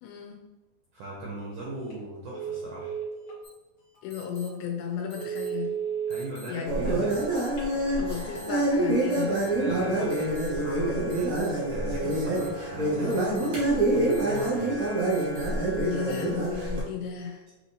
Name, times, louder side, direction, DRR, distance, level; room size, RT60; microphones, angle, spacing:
voice 1, 0.0-0.4 4.0-5.8 6.5-7.0 8.0-9.4 12.0-12.2 15.8-17.4, left 7 dB, 85° left, 3 dB, 2.4 m, -34 dB
voice 2, 0.9-2.9 6.1-7.2 9.5-15.0, right 1 dB, 80° right, -4 dB, 1.7 m, -39 dB
Telephone, 1.7-2.0 2.3-3.4 3.9-4.0 4.5-4.6 5.0-6.1 7.4-8.0, right 8 dB, 50° left, 1.6 m, -34 dB
sound 1, 3.4-3.5 4.1-4.5 5.1-5.5 6.1-6.5 7.1-7.5 8.1-8.5 9.1-9.5 10.1-10.5 11.1-11.5 12.1-12.5 13.1-13.5 14.1-14.5 15.1-15.5 16.1-16.2, right 1 dB, 65° left, 2.1 m, -48 dB
sound 2, 6.6-16.8, right 1 dB, 60° right, 1.1 m, -26 dB
6.2 x 3.0 x 2.7 m, 1.1 s
omnidirectional pair, 4.2 m